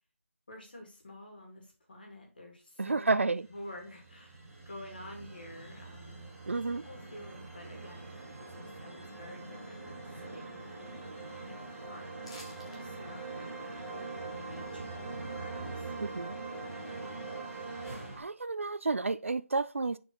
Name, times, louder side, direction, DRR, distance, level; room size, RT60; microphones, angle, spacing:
voice 1, 0.5-4.4 4.7-8.1 8.4-10.6 11.8-12.1 12.7-15.9, left 1 dB, 40° left, 2.2 m, -50 dB
voice 2, 2.8-3.5 6.5-6.8 16.0-16.4 18.2-20.0, right 3 dB, 60° right, 0.4 m, -31 dB
sound 1, 3.5-18.2, right 3 dB, ahead, 1.5 m, -43 dB
sound 2, 12.2-12.8 13.2-13.3, left 1 dB, 20° left, 1.1 m, -50 dB
6.3 x 4.5 x 3.8 m
figure-of-eight pair, 180°, 8 cm